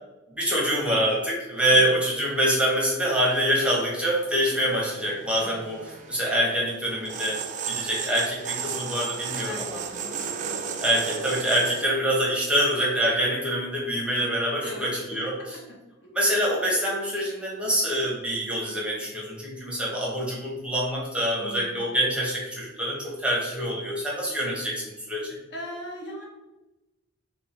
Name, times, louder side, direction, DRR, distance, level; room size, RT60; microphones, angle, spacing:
voice 1, 0.3-9.8 10.8-15.4 16.1-25.3, equal, 5° right, -4 dB, 0.9 m, -25 dB
sound 1, 4.0-11.8, right 6 dB, 35° right, 0.3 m, -34 dB
voice 2, 9.9-10.2 14.6-15.2 16.0-16.1 21.4-21.8 25.5-26.2, left 1 dB, 55° left, -2 dB, 1.0 m, -39 dB
3.7 x 2.2 x 4.0 m, 1.1 s
head